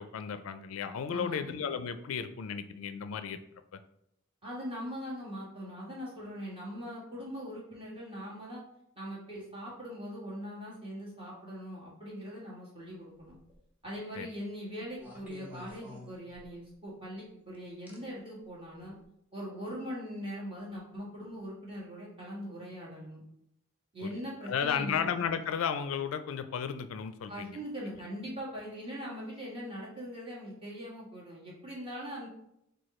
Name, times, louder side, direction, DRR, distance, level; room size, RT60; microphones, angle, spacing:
voice 1, 0.0-3.4 14.2-14.3 24.0-24.1 24.5-27.6, left 7 dB, 85° left, 11 dB, 0.4 m, -34 dB
voice 2, 1.1-1.5 4.4-8.6 9.0-13.4 13.8-19.0 19.3-23.2 23.9-25.1 27.3-32.3, equal, 25° right, -5 dB, 1.7 m, -41 dB
sound 1, 13.2-13.6 15.0-16.7 17.9-18.0 18.8-19.0, left 1 dB, 10° right, 0.8 m, -50 dB
4.7 x 2.3 x 4.2 m, 0.77 s
head